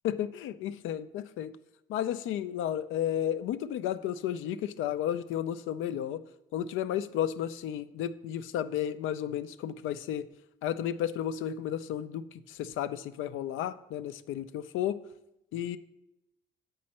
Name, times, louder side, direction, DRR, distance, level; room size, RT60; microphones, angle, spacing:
voice 1, 0.0-1.5 1.9-6.2 6.5-10.3 10.6-15.0 15.5-15.8, left 10 dB, 85° left, 13 dB, 0.4 m, -33 dB
7.6 x 5.4 x 4.2 m, 0.90 s
cardioid pair, 90°, 20 cm